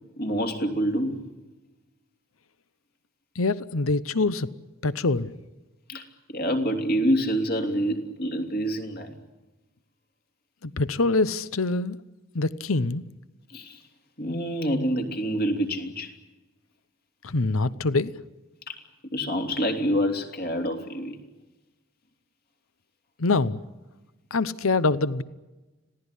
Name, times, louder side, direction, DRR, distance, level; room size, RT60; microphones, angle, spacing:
voice 1, 0.2-1.2 5.9-9.2 13.5-13.8 14.2-16.1 18.7-18.8 19.1-21.2, equal, 50° left, 3.1 m, -27 dB
voice 2, 3.4-4.5 4.8-5.3 10.6-12.0 12.3-13.0 17.2-18.1 23.2-23.6 24.3-25.2, left 3 dB, 85° left, 0.9 m, -24 dB
26.0 x 17.0 x 10.0 m
head